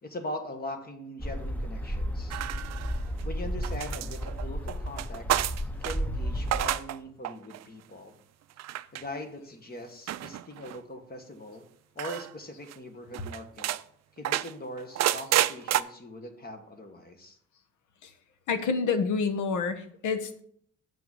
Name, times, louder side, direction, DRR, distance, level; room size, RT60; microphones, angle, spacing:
voice 1, 0.0-2.4 3.2-5.4 5.7-8.2 8.9-11.7 11.9-13.7 14.1-17.4, left 1 dB, 30° left, 6 dB, 1.5 m, -41 dB
sound 1, 1.2-6.7, equal, 5° left, 0.8 m, -33 dB
sound 2, 2.3-3.2 3.6-6.0 6.4-7.0 7.2-7.6 8.6-9.0 10.1-10.8 12.0-12.3 12.7-12.8 13.1-13.8 14.2-15.8, right 13 dB, 60° right, 0.5 m, -30 dB
voice 2, 18.5-20.4, left 5 dB, 80° left, 10 dB, 1.1 m, -28 dB
7.7 x 5.8 x 5.5 m, 0.63 s
cardioid pair, 90°, 30 cm